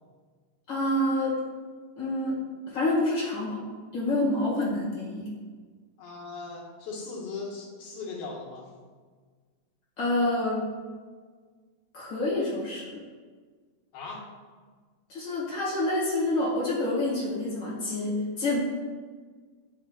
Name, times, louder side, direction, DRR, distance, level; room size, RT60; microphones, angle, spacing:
voice 1, 0.7-1.4 2.0-2.4 2.7-3.6 3.9-5.3 10.0-10.7 11.9-12.8 15.1-18.6, left 1 dB, 50° left, -7 dB, 1.4 m, -27 dB
voice 2, 6.0-8.7 13.9-14.3, left 4 dB, 65° left, -4 dB, 3.0 m, -38 dB
12.5 x 5.3 x 2.4 m, 1.5 s
omnidirectional pair, 4.9 m